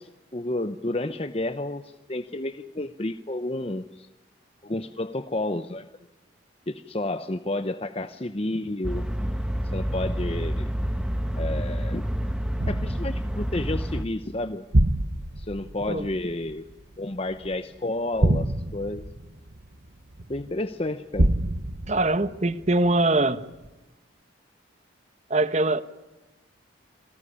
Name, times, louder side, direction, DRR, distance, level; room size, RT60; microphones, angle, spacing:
voice 1, 0.0-4.1 4.6-5.9 6.7-9.0 9.7-10.7 11.3-12.0 12.7-14.6 15.4-16.6 17.0-19.1 20.3-21.3, left 1 dB, 30° left, 0.9 m, -31 dB
sound 1, 8.8-14.0, equal, 5° right, 1.4 m, -28 dB
sound 2, 12.6-17.6 18.1-20.5 21.1-23.2 23.6-23.7, right 1 dB, 55° right, 1.3 m, -27 dB
voice 2, 21.9-23.4 25.3-25.8, right 2 dB, 35° right, 1.2 m, -22 dB
28.0 x 19.0 x 10.0 m
head